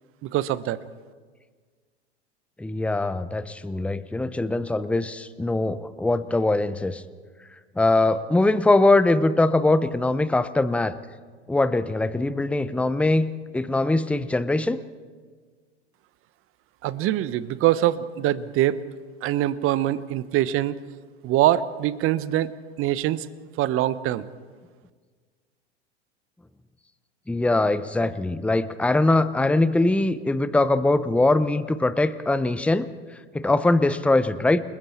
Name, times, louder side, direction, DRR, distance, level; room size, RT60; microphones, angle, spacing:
voice 1, 0.2-0.8 16.8-18.8 19.2-20.8 21.2-22.5 22.8-23.3 23.6-24.3, right 13 dB, 40° right, 16 dB, 1.0 m, -23 dB
voice 2, 2.6-7.0 7.8-10.9 11.5-13.3 13.5-14.8 27.3-32.9 33.3-34.6, left 2 dB, 5° left, 14 dB, 0.8 m, -22 dB
29.5 x 20.5 x 4.4 m, 1.5 s
hypercardioid pair, 90°, 34 cm